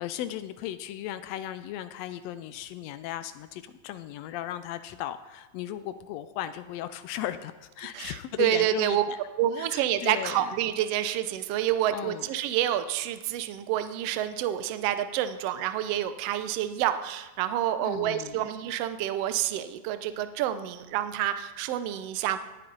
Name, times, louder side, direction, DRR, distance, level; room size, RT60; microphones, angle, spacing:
voice 1, 0.0-9.2 9.6-10.5 11.9-12.2 17.8-18.5, left 12 dB, 85° left, 11 dB, 1.4 m, -36 dB
voice 2, 7.9-9.0 9.4-22.4, right 12 dB, 75° right, 10 dB, 1.5 m, -28 dB
18.5 x 9.9 x 3.9 m, 1.1 s
omnidirectional pair, 3.5 m